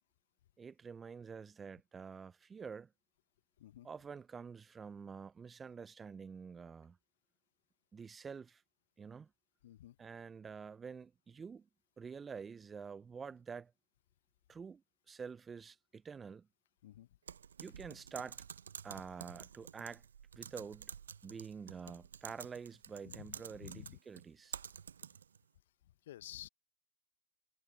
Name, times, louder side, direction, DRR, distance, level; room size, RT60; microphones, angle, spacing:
voice 1, 0.6-2.9 3.8-7.0 7.9-8.6 9.0-9.3 10.0-11.7 12.0-13.7 14.5-14.8 15.1-16.5 17.6-18.4 18.8-20.0 20.4-20.9 21.2-24.6, right 6 dB, 15° right, 0.6 m, -48 dB
voice 2, 9.6-10.0 16.8-17.1 23.0-24.0 26.1-26.5, left 13 dB, 60° left, 0.8 m, -51 dB
Typing, 17.3-25.4, right 7 dB, 70° right, 1.0 m, -50 dB
figure-of-eight pair, 110°, 0 cm